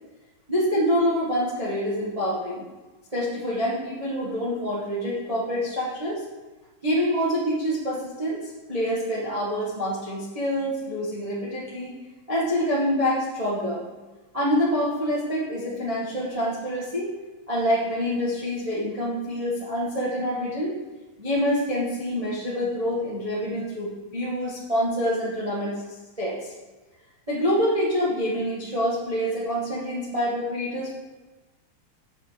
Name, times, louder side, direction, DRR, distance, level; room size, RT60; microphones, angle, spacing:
voice 1, 0.5-2.6 3.1-6.2 6.8-11.9 12.3-13.8 14.3-17.1 17.5-20.7 21.2-25.8 26.2-26.5 27.3-30.9, equal, 30° right, -7 dB, 0.6 m, -26 dB
7.0 x 6.1 x 6.4 m, 1.2 s
omnidirectional pair, 4.0 m